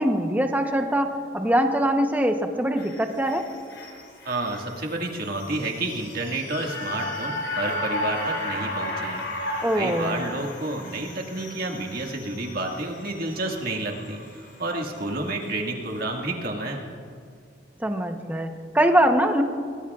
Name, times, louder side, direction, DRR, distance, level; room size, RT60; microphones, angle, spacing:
voice 1, 0.0-3.5 9.6-10.2 17.8-19.4, right 1 dB, 10° right, 5 dB, 0.9 m, -23 dB
sound 1, 2.8-15.1 15.4-15.5, left 1 dB, 65° left, 3.1 m, -35 dB
voice 2, 4.3-9.2 9.7-16.8, right 2 dB, 50° right, 1 dB, 1.9 m, -30 dB
22.5 x 20.5 x 2.4 m, 2.2 s
head